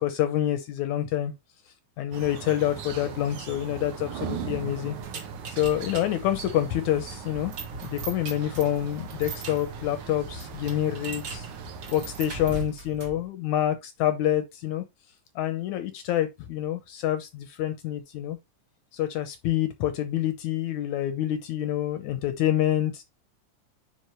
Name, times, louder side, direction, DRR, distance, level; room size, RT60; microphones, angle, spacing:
voice 1, 0.0-1.3 2.0-5.0 5.5-7.5 7.8-11.4 11.9-14.8 15.3-18.4 18.9-23.0, left 12 dB, 75° left, 1.8 m, -27 dB
sound 1, 2.1-12.6, right 7 dB, 70° right, 2.2 m, -39 dB
sound 2, 5.0-13.3, right 3 dB, 45° right, 1.6 m, -40 dB
9.8 x 3.6 x 3.0 m
omnidirectional pair, 4.1 m